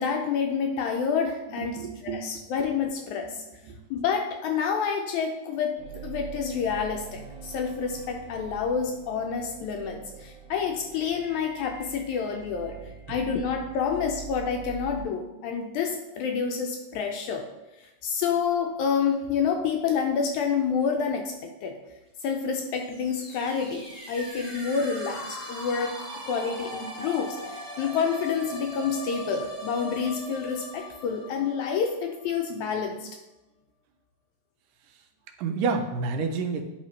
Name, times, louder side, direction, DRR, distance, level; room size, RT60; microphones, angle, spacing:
voice 1, 0.0-3.4 3.9-12.7 13.1-17.5 17.8-21.8 22.2-33.1, left 6 dB, 80° left, 3 dB, 1.7 m, -28 dB
voice 2, 1.6-2.4 3.7-3.8 13.1-13.2 35.4-36.6, right 4 dB, 90° right, 5 dB, 2.3 m, -29 dB
sound 1, 5.8-15.0, right 7 dB, 55° right, 1.4 m, -44 dB
sound 2, 22.7-32.5, equal, 30° left, 1.2 m, -40 dB
9.8 x 3.6 x 3.1 m, 1.0 s
omnidirectional pair, 3.7 m